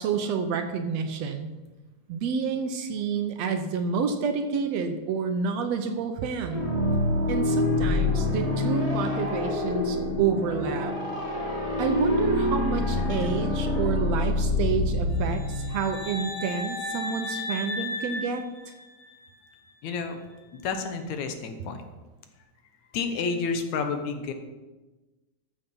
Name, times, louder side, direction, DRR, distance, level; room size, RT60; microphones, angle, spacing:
voice 1, 0.0-1.5 2.1-6.7 7.3-10.9 11.8-18.4, right 6 dB, 70° right, 6 dB, 1.9 m, -29 dB
sound 1, 6.5-16.2, left 2 dB, 10° right, 3.1 m, -26 dB
sound 2, 15.2-19.2, left 2 dB, 30° right, 4.8 m, -35 dB
voice 2, 19.8-20.2 20.5-21.8 22.9-24.3, left 5 dB, 75° left, 7 dB, 2.3 m, -30 dB
14.0 x 6.9 x 5.4 m, 1.2 s
omnidirectional pair, 3.4 m